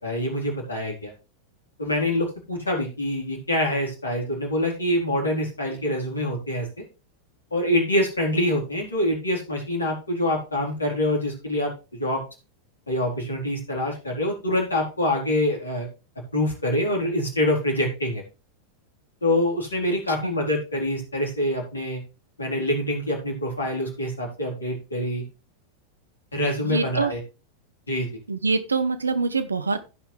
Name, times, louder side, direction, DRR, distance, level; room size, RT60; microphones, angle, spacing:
voice 1, 0.0-1.1 1.8-6.8 7.5-12.2 12.9-15.9 16.3-18.2 19.2-22.0 22.4-25.2 26.3-27.2 27.9-28.2, left 1 dB, 75° left, -1 dB, 4.1 m, -25 dB
voice 2, 26.6-27.1 28.3-29.8, right 4 dB, 75° right, 12 dB, 0.9 m, -24 dB
15.5 x 5.7 x 3.4 m, 0.30 s
figure-of-eight pair, 90°, 0 cm